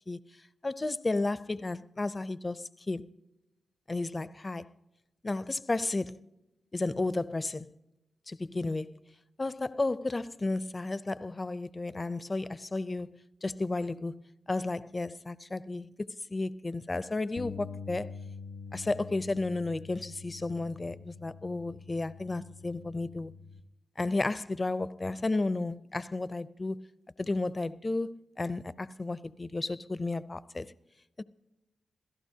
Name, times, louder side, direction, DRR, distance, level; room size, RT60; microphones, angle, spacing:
voice 1, 0.6-3.1 3.9-4.7 5.2-6.2 6.7-7.7 8.3-9.0 9.4-15.9 16.3-18.1 18.7-23.3 24.0-26.9 27.2-30.7 31.2-31.3, left 2 dB, 25° left, 0.5 m, -33 dB
Bass guitar, 17.4-23.6, left 5 dB, 80° left, 1.7 m, -45 dB
27.0 x 17.0 x 2.8 m
wide cardioid pair, 135°, 0 cm